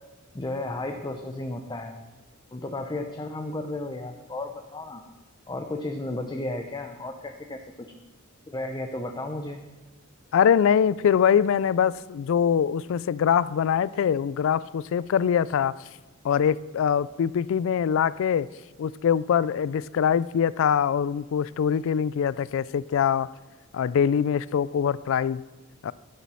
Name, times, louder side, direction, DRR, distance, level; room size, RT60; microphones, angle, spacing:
voice 1, 0.3-1.9 2.5-5.0 5.5-7.6 8.5-9.6, left 2 dB, 20° left, 0.6 m, -33 dB
voice 2, 10.3-15.7 16.2-18.5 18.8-23.3 23.7-25.4 25.8-25.9, left 8 dB, 65° left, 0.3 m, -23 dB
11.5 x 7.3 x 5.6 m
head